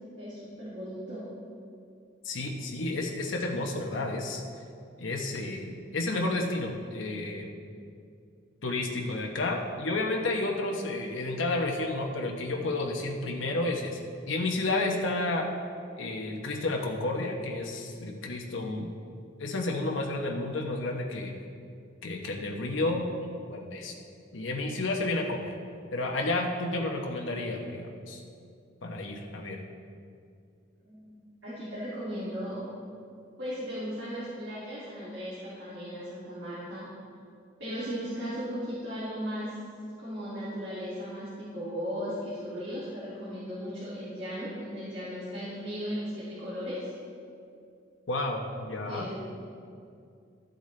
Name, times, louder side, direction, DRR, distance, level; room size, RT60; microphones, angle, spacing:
voice 1, 0.2-1.3 30.8-31.1 31.4-32.6 33.4-36.8 37.6-39.5 40.0-46.9 48.9-49.4, equal, 70° right, -10 dB, 2.6 m, -36 dB
voice 2, 2.2-4.4 5.0-7.7 8.6-14.0 14.3-15.5 16.0-18.9 19.4-21.3 22.0-23.9 24.3-25.5 25.9-28.2 28.8-29.6 48.1-49.1, left 2 dB, 85° left, 1 dB, 1.0 m, -31 dB
13.0 x 7.8 x 3.3 m, 2.4 s
head